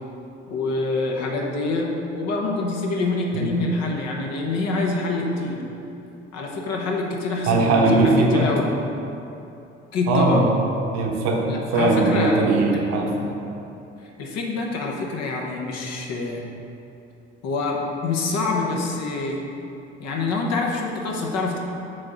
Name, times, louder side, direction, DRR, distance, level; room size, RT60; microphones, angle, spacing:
voice 1, 0.5-5.6 6.3-8.7 9.9-10.4 11.5-12.4 12.7-12.8 14.0-16.5 17.4-19.4 20.0-21.6, left 3 dB, 55° left, 0 dB, 1.1 m, -26 dB
voice 2, 7.5-8.5 10.1-10.5 10.9-13.1, right 3 dB, 55° right, 0 dB, 1.1 m, -20 dB
6.4 x 3.8 x 6.2 m, 2.8 s
figure-of-eight pair, 55°, 32 cm